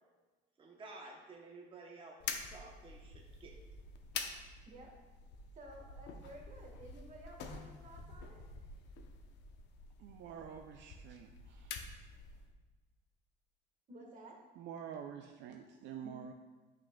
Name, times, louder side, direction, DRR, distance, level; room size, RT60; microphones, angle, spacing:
voice 1, 0.6-3.5, right 3 dB, 25° right, 0 dB, 0.8 m, -53 dB
sound 1, 2.2-12.5, left 5 dB, 65° left, 0.7 m, -47 dB
voice 2, 5.5-8.5 13.9-14.4 16.0-16.1, right 1 dB, 40° right, 0 dB, 1.4 m, -53 dB
voice 3, 10.0-11.8 14.6-16.3, right 8 dB, 70° right, 4 dB, 0.5 m, -48 dB
8.6 x 6.2 x 2.2 m, 1.3 s
cardioid pair, 135°, 20 cm